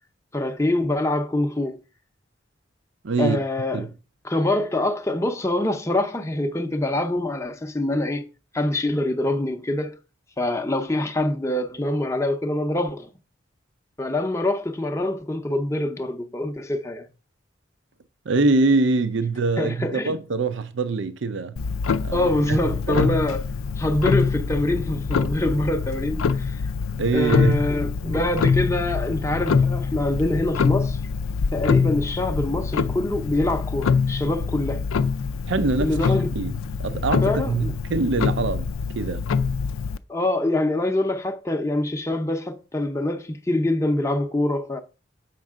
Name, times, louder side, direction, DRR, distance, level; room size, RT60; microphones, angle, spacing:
voice 1, 0.3-1.8 3.2-3.9 4.2-8.3 8.5-10.0 10.4-13.1 14.0-17.1 19.6-20.1 22.1-23.5 23.8-26.7 27.1-31.0 31.5-34.8 35.8-36.3 37.2-37.7 40.1-44.8, left 1 dB, 15° left, 0.6 m, -25 dB
voice 2, 3.0-3.4 3.7-3.9 18.3-21.6 22.0-22.6 22.9-23.1 27.0-27.6 35.5-36.0 36.4-36.5 36.8-39.3, right 3 dB, 65° right, 0.5 m, -24 dB
Clock, 21.6-40.0, left 5 dB, 85° left, 0.4 m, -25 dB
7.4 x 5.3 x 3.6 m
head